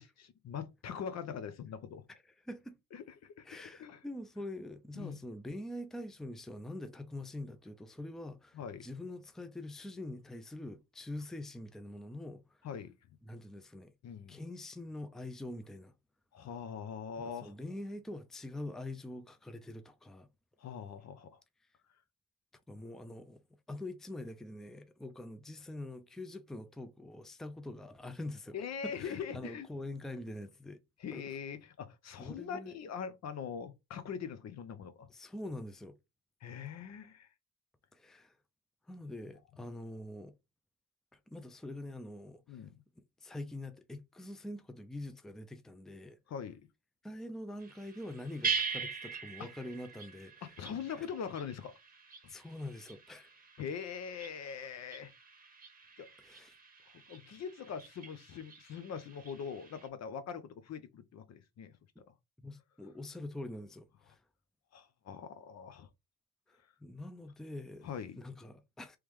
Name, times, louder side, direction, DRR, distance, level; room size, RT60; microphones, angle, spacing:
voice 1, 0.0-2.0 2.9-4.0 4.9-5.2 8.5-8.9 12.6-12.9 14.0-14.4 16.3-17.5 20.6-21.4 28.5-29.7 31.0-35.1 36.4-37.3 42.5-42.8 46.3-46.6 49.4-49.5 50.4-51.7 52.2-52.3 53.6-55.1 56.0-56.1 56.9-61.8 62.1-62.2 64.7-65.9 67.8-68.2, left 7 dB, 60° left, 0.7 m, -42 dB
voice 2, 2.4-2.8 3.4-12.7 13.2-13.9 14.3-15.9 17.2-20.3 22.7-23.4 23.7-28.6 28.8-30.8 31.1-31.2 32.2-32.7 35.1-36.0 37.9-38.3 38.9-40.3 41.1-42.6 43.2-46.2 47.0-50.5 51.0-51.1 52.3-53.3 56.2-56.5 62.0-62.1 62.4-64.2 66.5-67.9 68.1-69.0, left 1 dB, ahead, 0.5 m, -44 dB
sound 1, 47.6-59.9, right 5 dB, 30° right, 1.0 m, -43 dB
3.4 x 3.1 x 3.2 m
cardioid pair, 90°, 30 cm